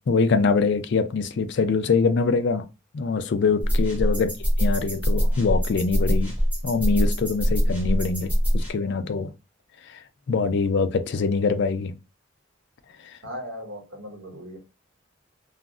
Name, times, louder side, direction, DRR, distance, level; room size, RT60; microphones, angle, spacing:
voice 1, 0.1-2.7 2.9-4.3 4.6-6.3 6.6-9.3 9.9-10.0 10.3-11.9, left 4 dB, 60° left, 0.4 m, -23 dB
sound 1, 3.6-8.7, equal, 10° right, 0.7 m, -23 dB
voice 2, 13.2-14.6, equal, 85° right, 1.0 m, -38 dB
2.3 x 2.0 x 3.6 m
head